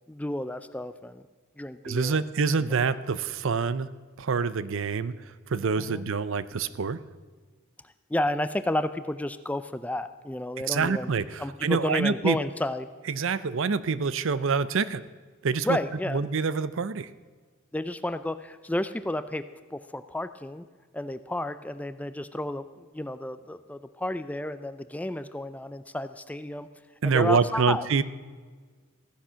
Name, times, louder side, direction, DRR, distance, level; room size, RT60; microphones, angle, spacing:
voice 1, 0.1-1.2 1.6-2.2 5.8-6.0 8.1-11.1 11.4-12.9 15.6-16.2 17.7-19.4 19.7-20.6 20.9-26.7 27.0-27.9, left 1 dB, 5° left, 11 dB, 0.4 m, -31 dB
voice 2, 1.8-3.9 4.2-7.0 10.7-12.4 13.1-15.0 15.4-15.8 16.1-17.1 27.0-28.0, right 5 dB, 60° right, 15 dB, 0.5 m, -26 dB
15.0 x 10.0 x 6.2 m, 1.5 s
head